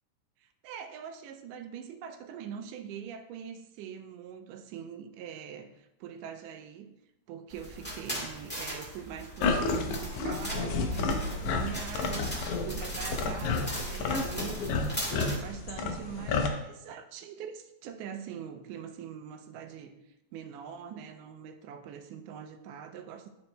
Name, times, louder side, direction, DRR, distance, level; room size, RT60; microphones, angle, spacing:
voice 1, 0.4-6.9 7.3-14.6 15.0-19.9 20.3-23.3, right 8 dB, 80° right, 6 dB, 2.1 m, -43 dB
sound 1, 7.5-15.4, equal, 5° left, 0.8 m, -40 dB
sound 2, 9.4-16.5, left 3 dB, 75° left, 2.0 m, -31 dB
11.5 x 4.3 x 3.0 m, 0.86 s
omnidirectional pair, 3.9 m